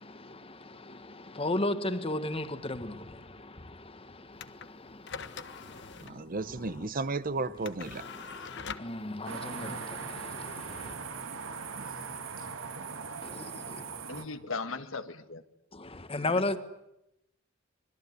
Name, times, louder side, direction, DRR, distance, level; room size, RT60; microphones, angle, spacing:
voice 1, 0.0-6.9 7.9-10.9 13.2-13.9 15.7-16.6, left 2 dB, 30° left, 1.5 m, -36 dB
sound 1, 4.3-12.8, left 6 dB, 60° left, 1.2 m, -46 dB
voice 2, 6.0-8.1 11.8-11.9, right 3 dB, 45° right, 0.9 m, -34 dB
sound 2, 9.2-14.2, right 5 dB, 90° right, 2.4 m, -40 dB
voice 3, 14.1-15.4, left 4 dB, 85° left, 1.6 m, -37 dB
25.5 x 21.0 x 9.5 m
head